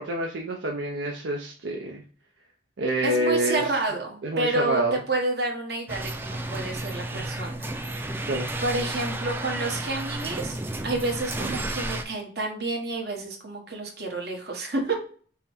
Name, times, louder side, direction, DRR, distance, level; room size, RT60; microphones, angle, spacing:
voice 1, 0.0-2.0 2.8-3.6 4.2-5.0 7.1-7.2 8.2-8.6, right 1 dB, 90° right, 1 dB, 0.6 m, -27 dB
voice 2, 3.0-7.7 8.6-10.6 10.8-14.9, right 2 dB, 65° right, 1 dB, 1.3 m, -29 dB
sound 1, 5.9-12.0, right 1 dB, 10° right, 0.4 m, -32 dB
5.5 x 2.1 x 4.4 m, 0.42 s
head